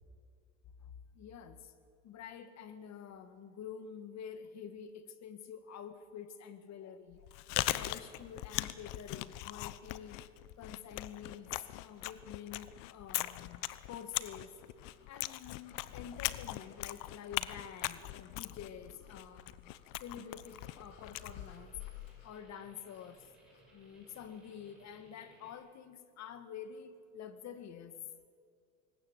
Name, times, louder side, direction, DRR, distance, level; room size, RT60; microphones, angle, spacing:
voice 1, 0.8-1.7 2.0-7.3 7.7-10.2 10.6-14.5 15.1-19.7 20.0-21.7 22.2-23.3 23.7-28.0, left 8 dB, 50° left, 10 dB, 2.1 m, -48 dB
Chewing mastication, 7.1-22.2, left 18 dB, 65° left, 0.9 m, -40 dB
sound 1, 13.0-24.9, left 2 dB, 85° left, 5.1 m, -63 dB
sound 2, 20.3-25.5, right 1 dB, ahead, 7.9 m, -65 dB
21.5 x 19.5 x 8.4 m, 2.3 s
supercardioid pair, 100°, 36 cm